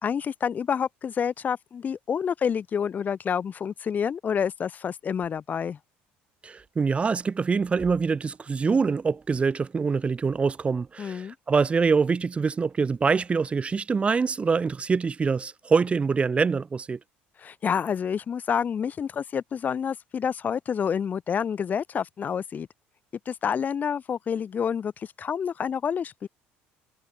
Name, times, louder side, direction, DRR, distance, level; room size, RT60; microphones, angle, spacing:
voice 1, 0.0-5.8 11.0-11.3 17.4-22.7 23.3-26.3, left 7 dB, 35° left, 1.9 m, -28 dB
voice 2, 6.4-17.0, right 5 dB, 25° right, 1.4 m, -25 dB
supercardioid pair, 100°, 5 cm